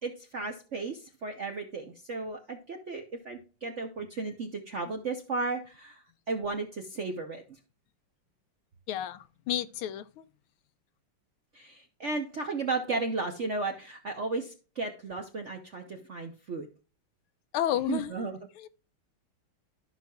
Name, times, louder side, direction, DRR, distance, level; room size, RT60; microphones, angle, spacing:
voice 1, 0.0-7.4 11.5-16.7 17.9-18.4, right 3 dB, 60° right, 0.8 m, -34 dB
voice 2, 8.9-10.3 17.5-18.1 18.6-18.7, left 11 dB, 85° left, 1.5 m, -31 dB
13.5 x 5.9 x 2.3 m
omnidirectional pair, 2.4 m